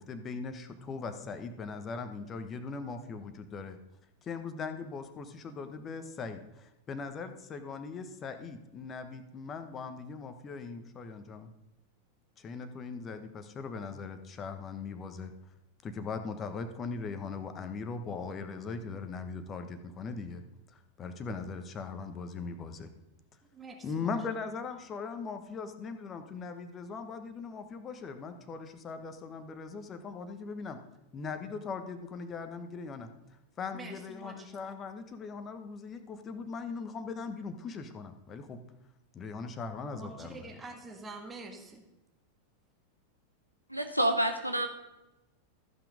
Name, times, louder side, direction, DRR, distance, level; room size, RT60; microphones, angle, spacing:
voice 1, 0.0-3.8 4.2-11.5 12.4-15.3 15.8-20.4 20.7-22.9 23.8-30.8 31.1-33.1 33.6-38.6 39.1-40.5, left 4 dB, 25° left, 8 dB, 1.1 m, -40 dB
voice 2, 23.5-24.1 33.7-34.5 39.9-41.8, right 2 dB, 15° right, 1 dB, 1.6 m, -46 dB
voice 3, 43.7-44.7, right 1 dB, 90° right, 5 dB, 0.8 m, -28 dB
14.0 x 5.9 x 5.1 m, 0.95 s
figure-of-eight pair, 90°, 0 cm